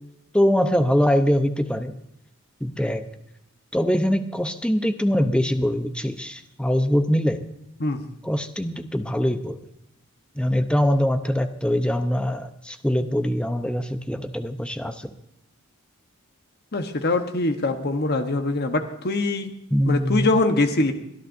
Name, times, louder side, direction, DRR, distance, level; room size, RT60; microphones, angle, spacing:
voice 1, 0.3-2.0 2.6-3.0 3.7-7.4 8.2-9.6 10.4-15.1 19.7-20.3, equal, 5° left, 8 dB, 0.7 m, -23 dB
voice 2, 16.7-19.5 19.8-20.9, left 2 dB, 45° left, 6 dB, 1.1 m, -23 dB
24.5 x 11.0 x 2.7 m, 0.79 s
head